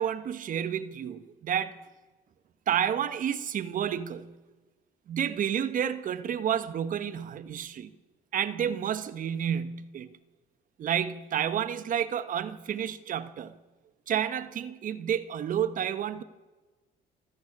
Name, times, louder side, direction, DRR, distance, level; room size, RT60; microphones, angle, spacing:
voice 1, 0.0-1.8 2.7-4.3 5.1-7.9 8.3-10.1 10.8-13.6 14.1-16.2, right 9 dB, 50° right, 1.2 m, -30 dB
26.5 x 13.5 x 8.6 m
cardioid pair, 110°, 17 cm